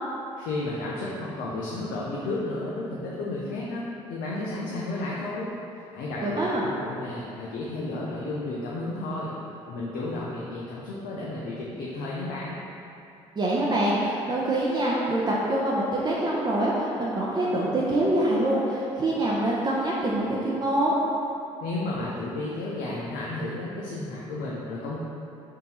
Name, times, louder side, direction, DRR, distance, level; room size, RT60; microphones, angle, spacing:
voice 1, 0.4-5.5 5.9-9.3 9.7-12.6 21.6-25.0, left 2 dB, 75° left, -5 dB, 0.5 m, -32 dB
voice 2, 6.2-6.6 13.4-21.0, right 1 dB, 30° right, -6 dB, 0.6 m, -25 dB
3.7 x 2.8 x 4.1 m, 2.8 s
hypercardioid pair, 60°, 14 cm